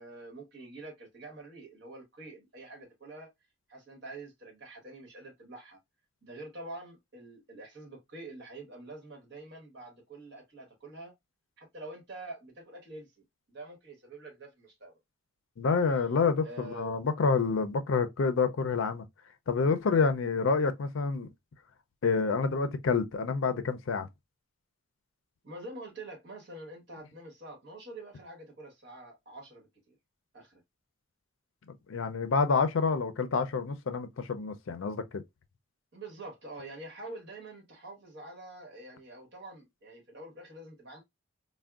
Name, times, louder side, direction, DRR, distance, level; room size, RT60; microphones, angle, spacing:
voice 1, 0.0-3.3 3.7-5.8 6.2-11.1 11.6-13.1 13.5-14.9 16.4-17.0 25.4-30.0 30.3-30.6 35.9-41.0, right 2 dB, 55° right, 1.2 m, -46 dB
voice 2, 15.6-19.0 19.5-21.3 22.0-24.1 31.9-35.2, left 4 dB, 70° left, 0.4 m, -28 dB
3.4 x 2.2 x 2.3 m
head